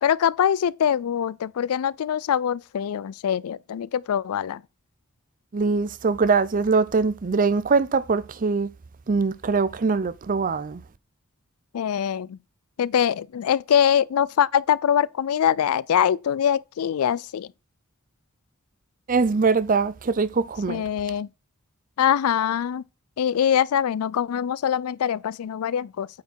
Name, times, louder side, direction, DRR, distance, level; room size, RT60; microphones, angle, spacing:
voice 1, 0.0-4.6 11.7-12.4 12.8-17.5 20.7-21.3 22.0-22.8 23.2-26.1, left 9 dB, 85° left, 0.4 m, -23 dB
voice 2, 5.5-8.7 9.1-10.8 19.1-20.8, right 4 dB, 40° right, 0.5 m, -22 dB
8.4 x 4.4 x 4.6 m
head